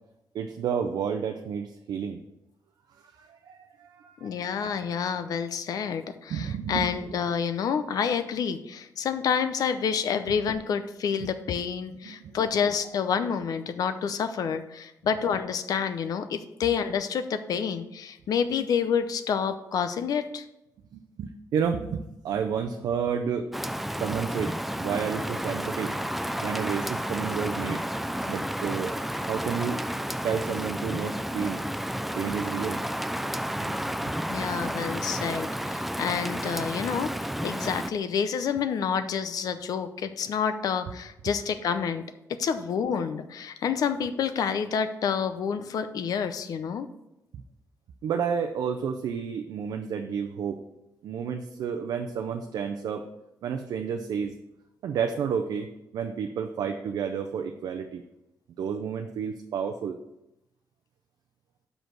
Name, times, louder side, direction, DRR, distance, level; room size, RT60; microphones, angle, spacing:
voice 1, 0.3-2.2 3.1-4.5 6.3-6.9 11.2-11.3 12.1-12.4 20.9-23.5 24.0-26.0 26.4-27.8 28.3-29.0 29.2-29.8 30.2-31.6 32.2-32.8 33.6-34.1 48.0-50.6 51.0-53.0 53.4-54.3 54.8-55.7 55.9-58.0 58.6-60.0, right 7 dB, 80° right, 5 dB, 0.5 m, -31 dB
voice 2, 4.2-20.4 34.3-42.0 42.4-46.9, left 7 dB, 70° left, 10 dB, 0.6 m, -28 dB
Rain, 23.5-37.9, equal, 5° right, 0.3 m, -31 dB
6.2 x 5.2 x 6.0 m, 0.90 s
cardioid pair, 120°, 6 cm